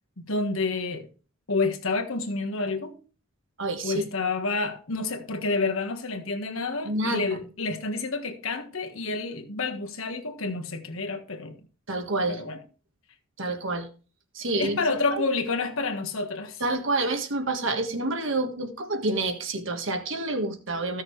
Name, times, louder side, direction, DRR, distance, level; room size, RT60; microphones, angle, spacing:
voice 1, 0.3-1.1 1.5-3.0 3.8-11.6 12.3-12.6 14.5-16.6, left 3 dB, 70° left, 1.5 m, -29 dB
voice 2, 3.6-4.0 6.8-7.4 11.9-12.4 13.4-13.9 14.3-14.8 15.1-15.2 16.6-21.0, right 2 dB, 60° right, 1.6 m, -28 dB
15.5 x 6.4 x 3.2 m
head